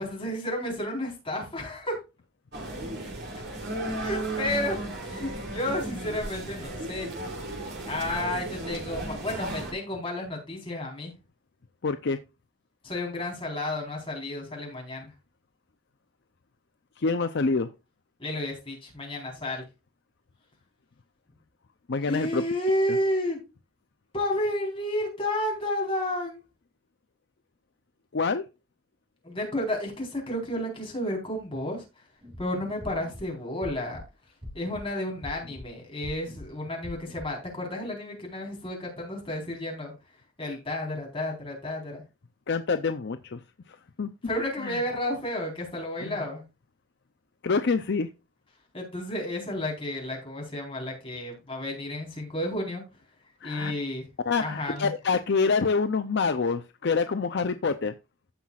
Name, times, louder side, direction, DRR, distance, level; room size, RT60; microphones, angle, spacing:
voice 1, 0.0-2.0 4.0-7.1 7.9-11.1 12.8-15.1 18.2-19.6 22.0-23.4 24.1-26.4 29.2-31.8 32.4-34.0 34.5-39.9 40.4-42.0 44.2-46.4 48.7-52.8 53.4-54.0 54.4-54.9, left 1 dB, 25° left, 4.1 m, -31 dB
sound 1, 2.5-9.7, right 1 dB, 50° right, 3.1 m, -35 dB
voice 2, 11.8-12.2 17.0-17.7 21.9-22.4 28.1-28.4 42.5-43.4 43.7-44.1 44.6-44.8 46.0-46.2 47.4-48.1 53.4-53.7 54.3-57.9, left 4 dB, 55° left, 0.6 m, -26 dB
sound 2, 32.2-32.4 32.8-33.2 33.6-34.0 34.4-34.8 35.2-35.7 36.0-36.5 36.8-37.3, left 1 dB, 25° right, 2.8 m, -42 dB
15.5 x 5.8 x 2.4 m
head